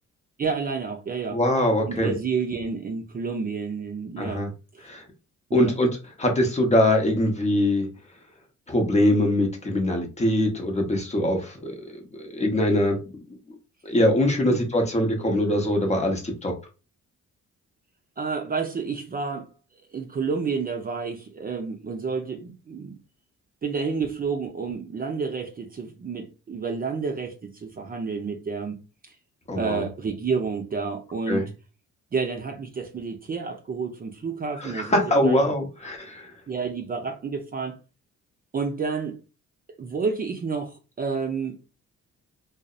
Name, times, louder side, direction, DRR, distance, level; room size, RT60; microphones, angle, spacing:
voice 1, 0.4-1.4 1.9-4.5 4.7-4.8 5.5-5.8 14.5-14.6 18.2-19.5 19.9-23.0 23.6-28.8 29.6-31.5 32.1-35.4 36.5-37.8 38.5-39.2 39.8-41.6, right 5 dB, 30° right, 0.4 m, -30 dB
voice 2, 1.3-2.1 4.2-4.5 4.8-5.0 5.5-5.9 6.2-7.9 8.7-13.0 13.8-16.5 29.5-29.9 31.3-31.5 34.6-36.3, left 1 dB, 20° left, 0.7 m, -23 dB
2.6 x 2.0 x 2.3 m
cardioid pair, 90°, 30 cm